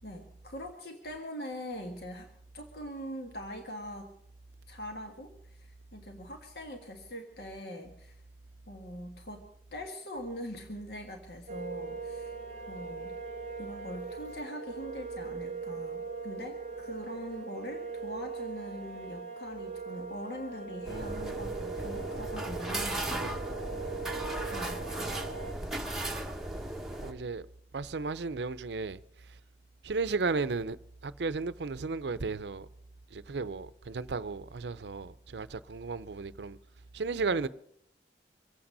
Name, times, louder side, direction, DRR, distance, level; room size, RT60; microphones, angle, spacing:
voice 1, 0.0-2.3 2.5-4.1 4.7-8.2 8.7-9.4 9.7-12.3 12.7-13.2 13.6-23.0 24.5-24.8, equal, 60° left, 1.7 m, -42 dB
sound 1, 11.5-25.5, right 4 dB, 40° right, 0.8 m, -40 dB
sound 2, 20.8-27.1, right 1 dB, ahead, 1.1 m, -36 dB
voice 2, 27.0-27.5 27.7-29.0 29.8-30.8 31.0-32.7 33.1-36.6 36.9-37.5, right 4 dB, 75° right, 0.6 m, -34 dB
25.0 x 8.8 x 5.4 m
head